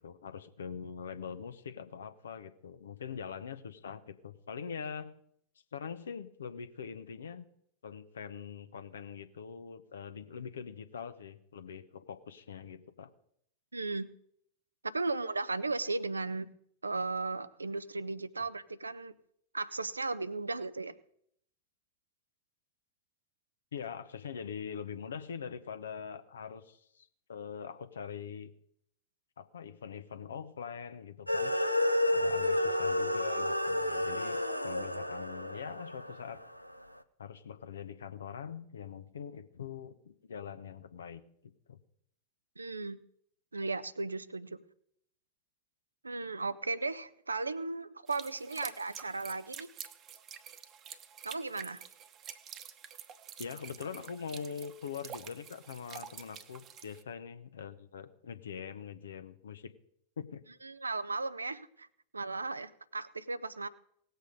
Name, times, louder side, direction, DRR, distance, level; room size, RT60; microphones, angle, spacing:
voice 1, 0.0-5.1 5.7-7.4 7.8-13.1 23.7-28.5 29.4-31.6 32.1-34.4 34.6-36.4 37.2-41.2 41.7-41.8 53.4-59.7 60.2-60.4, left 7 dB, 65° left, 11 dB, 0.9 m, -43 dB
voice 2, 13.7-14.1 14.8-16.5 16.8-19.1 19.5-20.9 42.6-43.0 43.5-44.6 46.0-49.7 51.2-51.8 60.6-61.9 62.1-63.7, right 3 dB, 80° right, 15 dB, 0.6 m, -36 dB
sound 1, 31.3-36.7, left 1 dB, 90° left, 0.7 m, -31 dB
sound 2, 48.1-57.0, right 9 dB, 30° right, 1.1 m, -48 dB
18.0 x 8.0 x 5.2 m, 0.70 s
figure-of-eight pair, 90°, 0 cm